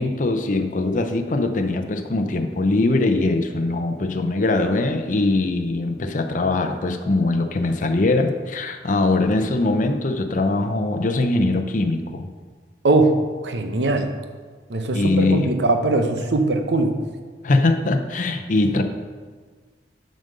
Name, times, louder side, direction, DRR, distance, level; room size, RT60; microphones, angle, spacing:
voice 1, 0.0-12.3 14.9-15.5 17.4-18.8, left 2 dB, 45° left, 6 dB, 0.6 m, -21 dB
voice 2, 12.8-13.2 13.4-14.2 14.7-16.9, right 2 dB, 80° right, 6 dB, 0.8 m, -20 dB
7.4 x 5.2 x 6.6 m, 1.5 s
head